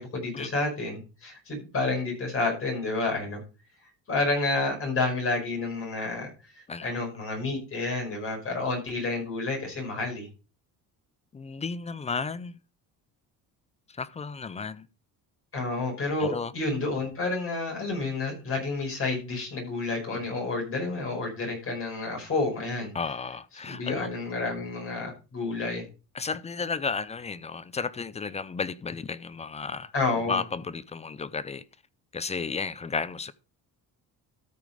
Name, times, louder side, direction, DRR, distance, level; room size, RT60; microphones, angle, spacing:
voice 1, 0.0-3.4 4.1-6.3 6.5-10.3 15.5-22.9 23.6-25.8 29.9-30.4, left 3 dB, 35° left, 5.0 m, -30 dB
voice 2, 11.3-12.6 14.0-14.9 16.2-16.5 22.9-24.1 26.1-29.9 30.3-31.6 32.1-33.3, left 5 dB, 20° left, 0.4 m, -33 dB
13.5 x 5.2 x 4.9 m
cardioid pair, 145°, 37 cm